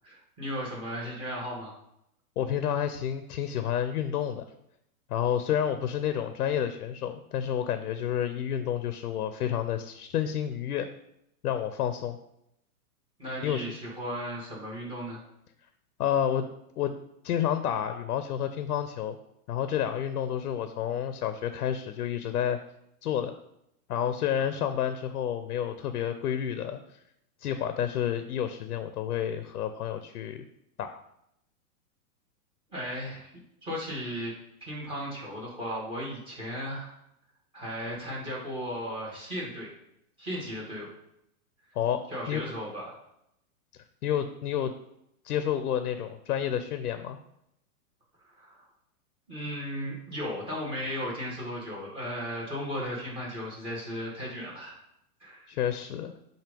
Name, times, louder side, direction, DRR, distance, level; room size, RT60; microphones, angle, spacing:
voice 1, 0.0-1.7 13.2-15.2 32.7-33.3 33.6-34.3 34.6-36.9 37.5-39.7 40.2-40.9 42.1-42.9 48.3-48.7 49.3-54.8 55.2-55.5, equal, 10° right, -4 dB, 1.8 m, -36 dB
voice 2, 2.4-4.4 5.1-10.9 11.4-12.2 13.4-13.7 16.0-16.4 16.8-16.9 17.2-19.2 19.5-22.6 23.0-23.3 23.9-26.8 27.4-30.4 30.8-31.0 41.7-42.0 42.3-42.4 44.0-44.7 45.2-47.2 55.5-56.1, left 9 dB, 80° left, 9 dB, 0.7 m, -29 dB
7.5 x 2.8 x 5.1 m, 0.79 s
supercardioid pair, 165°, 45 cm